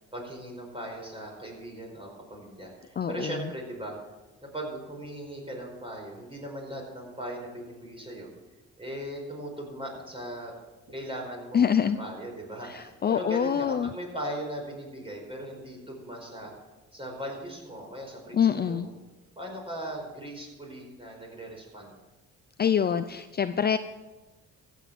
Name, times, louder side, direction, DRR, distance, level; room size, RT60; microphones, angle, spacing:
voice 1, 0.1-3.9 4.4-8.3 8.8-10.5 10.9-16.5 16.9-18.9 19.4-21.9, right 1 dB, 20° right, 0 dB, 4.8 m, -38 dB
voice 2, 3.0-3.4 11.5-12.0 12.6-13.9 18.3-18.9 22.6-23.8, left 8 dB, 35° left, 10 dB, 0.5 m, -25 dB
sound 1, 9.9-10.0 10.9-11.0 11.8-11.9 12.7-12.8 13.6-13.7 14.6-14.7 15.5-15.6 16.4-16.5 17.3-17.4 18.3-18.4, right 1 dB, 65° right, 5.3 m, -52 dB
14.5 x 8.1 x 6.0 m, 1.1 s
cardioid pair, 90°, 30 cm